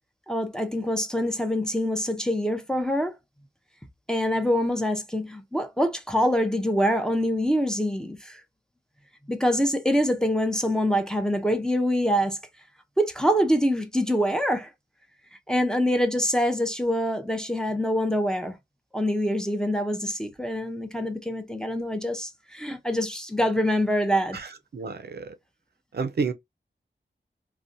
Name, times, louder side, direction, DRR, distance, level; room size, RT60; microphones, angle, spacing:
voice 1, 0.3-3.1 4.1-8.4 9.3-12.4 13.0-14.7 15.5-18.6 18.9-24.4, equal, 5° left, 0.5 m, -25 dB
voice 2, 24.7-25.3 25.9-26.3, right 5 dB, 55° right, 0.4 m, -29 dB
2.6 x 2.1 x 2.5 m
wide cardioid pair, 50°, 20 cm